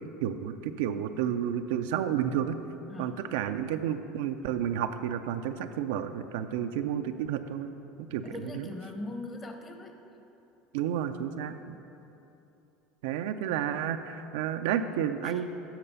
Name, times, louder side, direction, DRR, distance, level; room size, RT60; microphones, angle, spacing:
voice 1, 0.2-2.6 3.0-7.7 8.1-8.7 10.7-11.8 13.0-15.5, right 9 dB, 80° right, 8 dB, 0.4 m, -31 dB
voice 2, 6.6-6.9 8.2-10.0 11.6-11.8 15.2-15.4, left 2 dB, 25° left, 5 dB, 1.0 m, -41 dB
8.7 x 5.9 x 5.4 m, 2.9 s
supercardioid pair, 95°, 0 cm